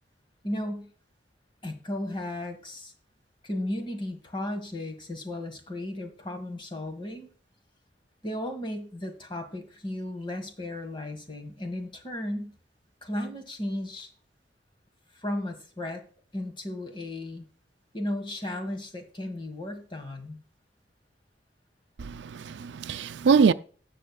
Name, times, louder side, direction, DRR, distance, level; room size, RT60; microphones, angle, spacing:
voice 1, 0.4-0.9 1.6-2.9 3.4-7.3 8.2-12.5 13.0-14.1 15.2-16.0 16.3-17.5 17.9-20.4, left 1 dB, 30° left, 1.6 m, -35 dB
voice 2, 22.0-23.5, right 5 dB, 80° right, 0.4 m, -23 dB
18.0 x 6.4 x 2.3 m
head